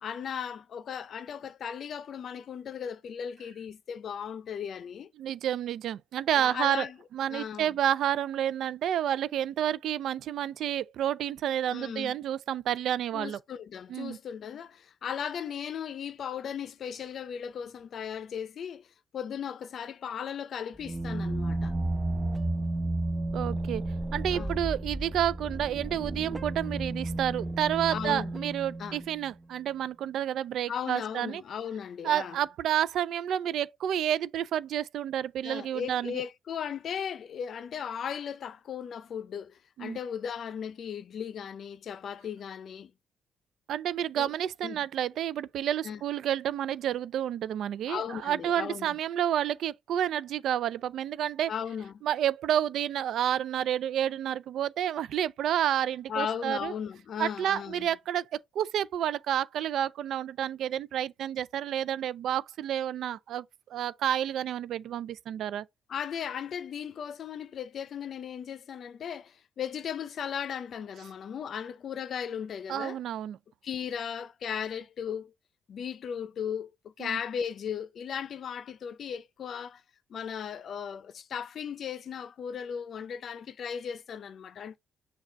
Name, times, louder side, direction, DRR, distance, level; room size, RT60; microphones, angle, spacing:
voice 1, 0.0-5.1 6.4-7.0 7.3-7.8 11.7-12.2 13.1-18.9 19.1-21.7 24.3-24.6 27.9-28.3 28.8-29.0 30.7-32.4 35.4-42.9 44.1-44.3 44.6-44.8 45.8-46.0 47.9-49.0 51.5-52.0 56.1-57.9 65.9-73.0 73.6-75.3 75.7-79.8 80.1-84.8, left 8 dB, 60° left, 0.5 m, -37 dB
voice 2, 5.2-6.9 7.1-13.4 13.9-14.2 23.3-23.8 24.1-31.4 32.0-36.2 39.8-40.0 43.7-51.5 52.0-56.7 57.2-58.3 58.6-65.6 72.7-73.4 77.0-77.2, right 10 dB, 75° right, 0.4 m, -30 dB
sound 1, 20.7-29.3, right 2 dB, 20° right, 0.9 m, -32 dB
6.5 x 2.4 x 3.4 m
cardioid pair, 90°, 0 cm